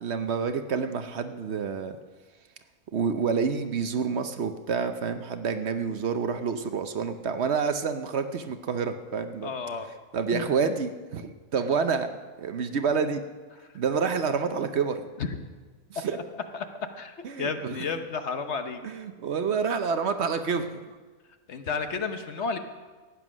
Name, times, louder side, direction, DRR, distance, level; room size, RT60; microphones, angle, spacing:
voice 1, 0.0-2.0 2.9-9.5 10.1-12.1 12.4-13.2 13.7-15.0 15.9-16.2 17.2-17.7 18.8-20.8, right 5 dB, 55° right, 9 dB, 0.9 m, -28 dB
voice 2, 9.4-9.9 10.3-10.6 15.2-15.3 15.9-16.2 16.5-16.7 17.0-18.8 21.5-22.6, left 5 dB, 55° left, 8 dB, 1.1 m, -32 dB
15.0 x 9.4 x 6.2 m, 1.4 s
omnidirectional pair, 1.4 m